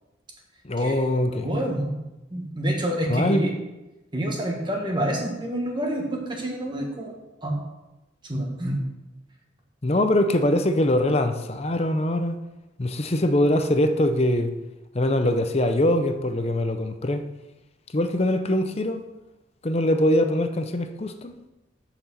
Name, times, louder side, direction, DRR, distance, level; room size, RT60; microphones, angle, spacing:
voice 1, 0.6-1.5 3.1-3.5 9.8-12.4 12.8-14.6 14.9-17.2 17.9-19.0 19.6-21.3, left 1 dB, 35° left, 8 dB, 0.7 m, -22 dB
voice 2, 1.3-1.9 2.3-3.5 4.1-7.1 7.4-7.5 8.2-8.8, right 1 dB, 25° right, 0 dB, 1.5 m, -27 dB
6.9 x 6.0 x 7.2 m, 1.0 s
head